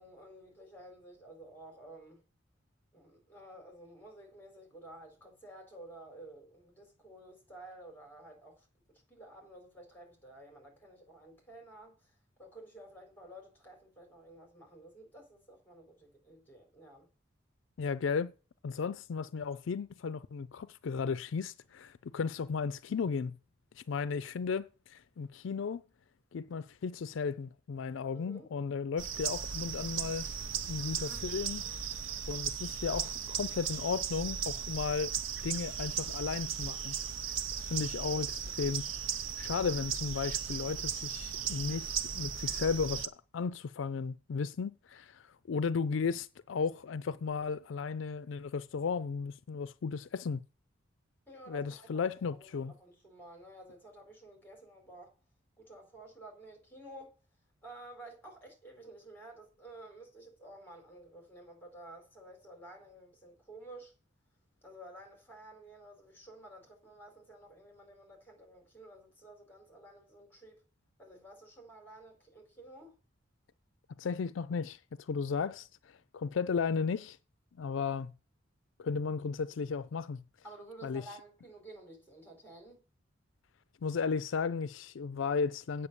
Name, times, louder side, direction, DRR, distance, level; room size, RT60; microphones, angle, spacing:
voice 1, 0.0-2.2 2.9-8.7 9.1-17.1 28.1-28.5 51.3-55.2 55.6-57.2 57.6-63.9 64.6-70.6 71.0-73.0 80.4-82.8, right 1 dB, 10° left, 4.4 m, -52 dB
voice 2, 17.8-18.3 18.6-23.3 23.8-25.8 26.3-30.3 30.7-31.6 32.3-35.2 35.4-36.9 37.6-38.8 39.4-50.4 51.5-52.7 74.0-77.2 77.6-78.1 78.8-80.2 80.8-81.0 83.8-85.9, left 5 dB, 70° left, 0.4 m, -35 dB
sound 1, 29.0-43.1, right 7 dB, 75° right, 0.8 m, -37 dB
8.6 x 6.9 x 6.8 m
head